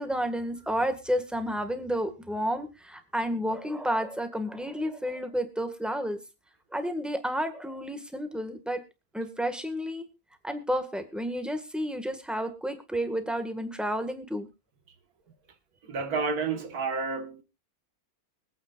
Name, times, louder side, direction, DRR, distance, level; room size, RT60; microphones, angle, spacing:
voice 1, 0.0-6.2 6.7-8.8 9.1-10.1 10.4-14.5, equal, ahead, 1.6 m, -31 dB
voice 2, 15.8-17.4, right 4 dB, 90° right, 2.0 m, -30 dB
24.5 x 8.9 x 2.5 m
omnidirectional pair, 1.6 m